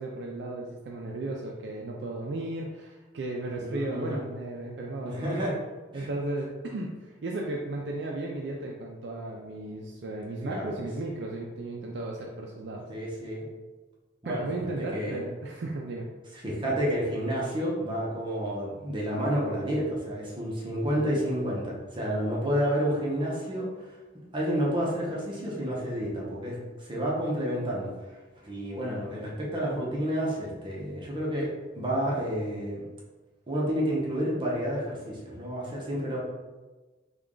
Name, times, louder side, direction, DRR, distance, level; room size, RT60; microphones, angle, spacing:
voice 1, 0.0-5.6 5.9-12.8 14.2-16.1 21.0-21.2, right 2 dB, 70° right, -1 dB, 0.4 m, -35 dB
voice 2, 3.5-4.2 5.0-5.5 5.9-6.1 10.4-10.8 12.9-13.5 14.2-15.2 16.3-23.7 24.3-27.9 28.4-32.8 33.5-36.2, equal, 30° right, -4 dB, 0.8 m, -30 dB
3.3 x 2.3 x 3.7 m, 1.2 s
head